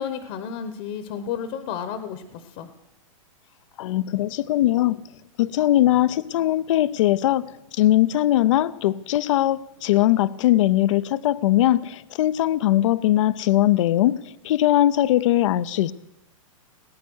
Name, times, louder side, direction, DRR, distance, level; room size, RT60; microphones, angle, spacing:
voice 1, 0.0-2.7, left 8 dB, 45° left, 10 dB, 1.0 m, -32 dB
voice 2, 3.8-5.0 5.4-15.9, left 14 dB, 65° left, 17 dB, 0.5 m, -20 dB
18.5 x 9.4 x 6.2 m, 0.90 s
hypercardioid pair, 150°, 17 cm